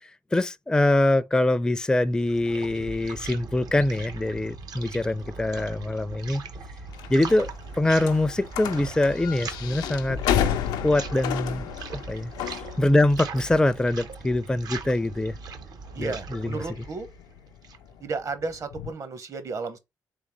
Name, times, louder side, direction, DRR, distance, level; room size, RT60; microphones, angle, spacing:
voice 1, 0.0-6.4 7.1-7.5 7.8-10.2 10.8-15.4 16.0-16.6, left 1 dB, 10° left, 0.4 m, -24 dB
sound 1, 1.9-17.9, right 4 dB, 70° right, 0.8 m, -40 dB
sound 2, 6.9-18.9, left 9 dB, 90° left, 0.4 m, -33 dB
voice 2, 15.9-17.1 18.0-19.8, right 4 dB, 50° right, 0.9 m, -33 dB
3.7 x 3.2 x 3.0 m
supercardioid pair, 60°, 7 cm